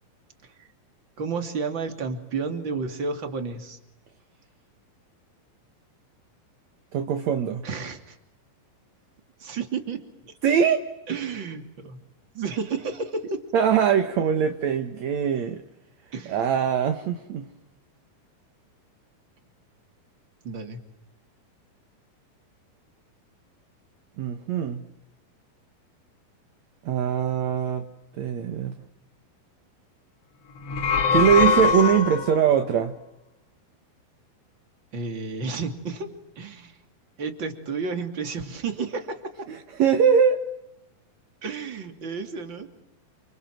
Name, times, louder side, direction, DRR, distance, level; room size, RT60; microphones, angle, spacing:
voice 1, 1.2-3.8 7.6-8.2 9.4-10.3 11.1-12.0 12.3-13.4 16.1-16.4 20.4-20.8 34.9-36.1 36.4-36.8 37.2-39.5 41.4-42.7, right 4 dB, 35° right, 6 dB, 3.2 m, -31 dB
voice 2, 6.9-7.6 10.4-10.8 13.5-15.6 16.3-17.5 24.2-24.8 26.8-27.9 28.2-28.7 31.1-32.9 39.5-40.4, right 8 dB, 60° right, 7 dB, 2.4 m, -22 dB
sound 1, 30.6-32.5, left 6 dB, 60° left, 1.7 m, -22 dB
30.0 x 26.0 x 7.6 m, 0.88 s
omnidirectional pair, 4.2 m